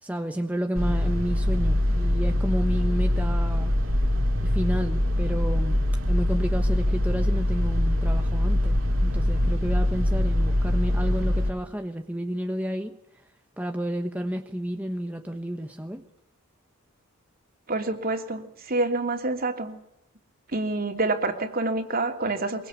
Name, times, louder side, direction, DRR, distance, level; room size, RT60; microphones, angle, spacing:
voice 1, 0.0-3.8 4.4-13.0 13.6-16.0, equal, 5° right, 5 dB, 1.1 m, -31 dB
sound 1, 0.7-11.5, left 1 dB, 65° right, 2.8 m, -23 dB
voice 2, 17.7-19.8 20.5-22.7, right 2 dB, 45° right, 5 dB, 3.0 m, -27 dB
23.0 x 23.0 x 8.3 m, 0.79 s
head